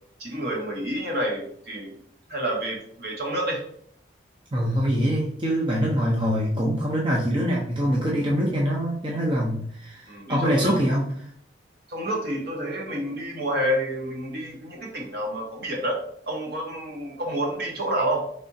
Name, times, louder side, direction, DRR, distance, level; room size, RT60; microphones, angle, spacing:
voice 1, 0.2-2.0 2.3-3.6 10.1-10.7 11.9-16.0 16.3-18.2, right 1 dB, 55° right, -1 dB, 1.1 m, -29 dB
voice 2, 4.5-11.1, equal, 25° right, -3 dB, 0.6 m, -24 dB
4.8 x 3.3 x 2.7 m, 0.64 s
head